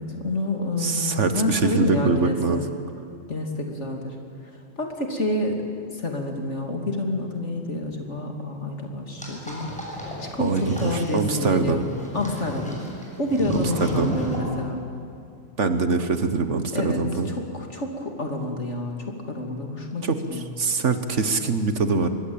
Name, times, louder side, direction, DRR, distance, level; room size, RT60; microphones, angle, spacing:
voice 1, 0.0-2.6 3.3-4.2 4.8-5.6 5.9-11.9 12.1-12.7 13.2-14.8 16.7-17.0 17.3-19.0 19.3-20.5, left 1 dB, 60° left, 2 dB, 3.2 m, -28 dB
voice 2, 0.8-2.6 10.4-11.8 13.5-14.1 15.6-17.3 20.0-20.2 20.6-22.1, right 4 dB, 65° right, 9 dB, 1.7 m, -23 dB
sound 1, 9.2-14.4, equal, 5° left, 6.7 m, -34 dB
24.5 x 22.0 x 9.0 m, 2.5 s
omnidirectional pair, 1.4 m